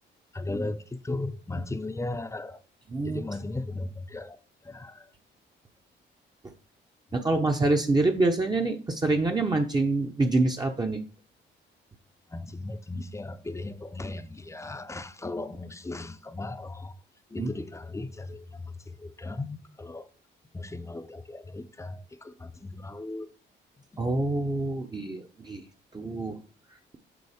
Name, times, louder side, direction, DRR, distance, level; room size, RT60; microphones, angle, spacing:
voice 1, 0.3-2.6 3.0-4.4 4.6-5.1 12.3-16.9 17.3-18.7 19.0-20.1 20.5-23.3, left 2 dB, 15° left, 0.6 m, -36 dB
voice 2, 2.9-3.2 7.1-11.0 17.4-17.5 24.0-25.7 25.9-26.4, right 2 dB, 20° right, 0.7 m, -26 dB
7.0 x 3.9 x 4.9 m
cardioid pair, 90°, 20 cm